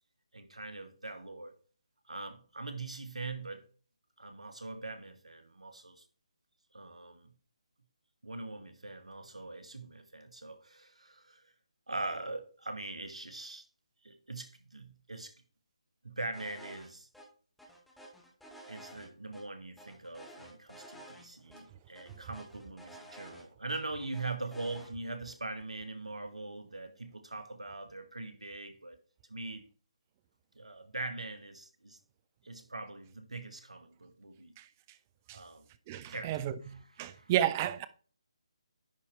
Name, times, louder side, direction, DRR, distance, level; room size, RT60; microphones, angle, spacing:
voice 1, 0.3-1.5 2.1-3.7 4.2-6.0 6.7-7.3 8.2-11.5 11.9-13.7 14.0-15.4 16.0-17.1 18.7-29.0 29.3-29.7 30.5-32.0 32.4-34.5 35.3-35.7 36.1-37.3, right 2 dB, 80° right, 1.2 m, -42 dB
sound 1, 16.3-16.9 17.1-17.2 17.6-19.4 19.8-21.2 21.5-21.6 21.9-23.8 24.1-24.9, right 1 dB, ahead, 1.1 m, -52 dB
voice 2, 35.9-36.5 37.0-37.9, right 12 dB, 20° right, 0.4 m, -31 dB
10.5 x 4.2 x 3.4 m
figure-of-eight pair, 150°, 3 cm